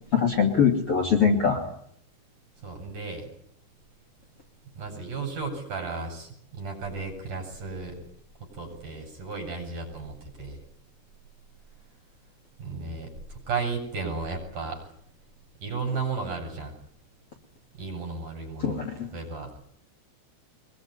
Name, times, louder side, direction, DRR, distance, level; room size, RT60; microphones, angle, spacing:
voice 1, 0.1-1.6 18.6-19.1, left 6 dB, 35° left, 3 dB, 3.1 m, -22 dB
voice 2, 2.6-3.3 4.8-8.0 8.5-10.6 12.6-14.9 15.6-16.7 17.8-19.5, right 4 dB, 45° right, 3 dB, 8.8 m, -34 dB
24.0 x 21.5 x 9.7 m, 0.66 s
omnidirectional pair, 5.1 m